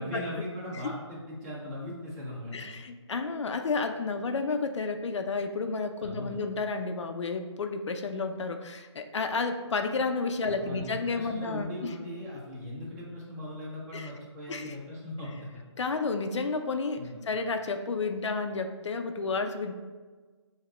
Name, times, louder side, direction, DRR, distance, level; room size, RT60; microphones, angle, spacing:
voice 1, 0.0-2.7 6.0-6.3 10.4-15.6 17.0-17.2, left 1 dB, 30° right, -4 dB, 1.1 m, -39 dB
voice 2, 2.5-11.9 13.9-14.1 14.5-14.8 15.8-19.7, left 4 dB, 70° left, 6 dB, 0.4 m, -31 dB
6.5 x 2.8 x 2.4 m, 1.4 s
figure-of-eight pair, 145°, 15 cm